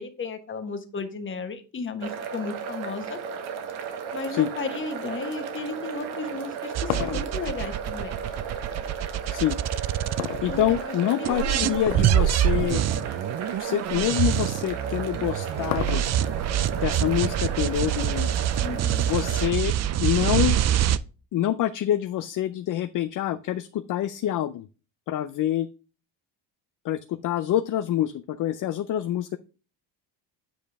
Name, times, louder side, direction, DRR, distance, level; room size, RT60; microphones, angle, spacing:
voice 1, 0.0-3.2 4.1-8.2 10.5-10.9 11.2-11.8 18.6-19.1, left 4 dB, 25° left, 7 dB, 1.3 m, -34 dB
sound 1, 2.0-19.5, right 6 dB, 90° right, 1.8 m, -35 dB
sound 2, 6.3-8.8 10.2-11.1 11.8-12.2 12.6-12.7 13.4-13.5 14.9-16.4, left 14 dB, 90° left, 0.7 m, -33 dB
sound 3, 6.7-10.8 11.2-21.0, right 11 dB, 40° right, 0.4 m, -25 dB
voice 2, 10.2-13.1 13.6-16.0 16.8-18.3 18.9-19.7 20.0-20.6 21.3-24.7 25.1-25.7 26.8-29.4, left 12 dB, 45° left, 12 dB, 0.5 m, -26 dB
9.2 x 5.0 x 3.5 m, 0.34 s
cardioid pair, 140°, 46 cm